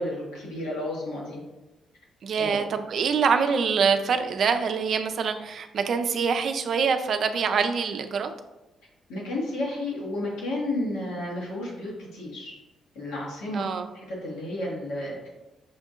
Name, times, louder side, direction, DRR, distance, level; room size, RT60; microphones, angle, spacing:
voice 1, 0.0-1.4 2.3-2.6 9.1-12.5 12.9-13.6 13.9-15.3, left 1 dB, 90° left, -5 dB, 1.3 m, -32 dB
voice 2, 2.2-8.3 13.5-13.8, right 6 dB, 60° right, 7 dB, 0.4 m, -25 dB
5.7 x 2.7 x 2.4 m, 1.0 s
supercardioid pair, 55°, 0 cm